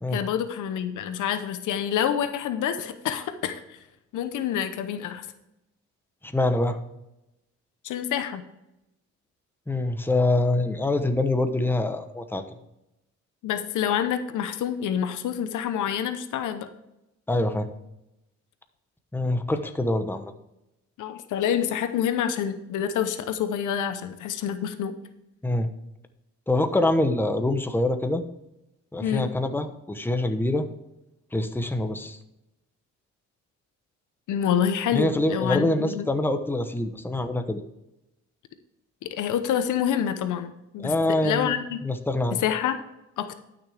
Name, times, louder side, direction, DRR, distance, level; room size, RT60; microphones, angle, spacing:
voice 1, 0.1-3.8 4.1-5.3 7.8-8.4 13.4-16.7 21.0-24.9 29.0-29.3 34.3-36.1 39.0-40.9 41.2-41.8 42.3-42.8 43.2-43.3, left 9 dB, 80° left, 10 dB, 1.0 m, -27 dB
voice 2, 6.2-6.8 9.7-12.4 17.3-17.7 19.1-20.3 25.4-25.7 26.5-28.2 28.9-30.7 31.3-32.2 34.9-37.6 40.8-42.4, left 2 dB, 5° left, 7 dB, 0.9 m, -25 dB
11.5 x 6.4 x 3.4 m, 0.89 s
cardioid pair, 90°, 30 cm